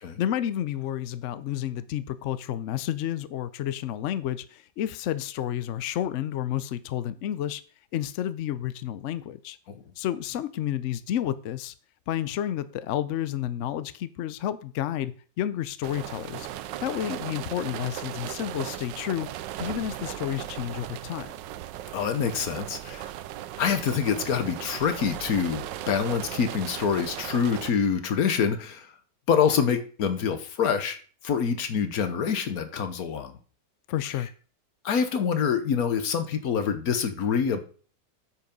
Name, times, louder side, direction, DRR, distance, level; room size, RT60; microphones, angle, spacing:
voice 1, 0.2-7.6 7.9-9.6 10.0-11.7 12.1-16.5 16.8-19.3 19.6-21.3 33.9-34.3, left 11 dB, 80° left, 15 dB, 0.6 m, -30 dB
sound 1, 15.8-27.7, right 13 dB, 85° right, 1.3 m, -37 dB
voice 2, 21.9-23.1 23.6-28.9 29.3-31.0 31.2-33.3 34.8-37.6, left 7 dB, 60° left, 9 dB, 1.4 m, -26 dB
8.6 x 5.6 x 5.2 m, 0.41 s
omnidirectional pair, 1.9 m